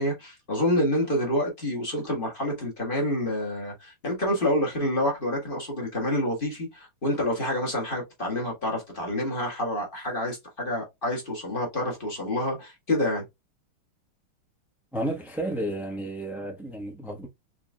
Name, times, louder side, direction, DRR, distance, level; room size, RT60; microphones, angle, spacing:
voice 1, 0.0-13.2, left 1 dB, 25° left, 1.7 m, -28 dB
voice 2, 14.9-17.3, right 1 dB, ahead, 0.4 m, -32 dB
4.6 x 3.6 x 2.3 m
omnidirectional pair, 2.4 m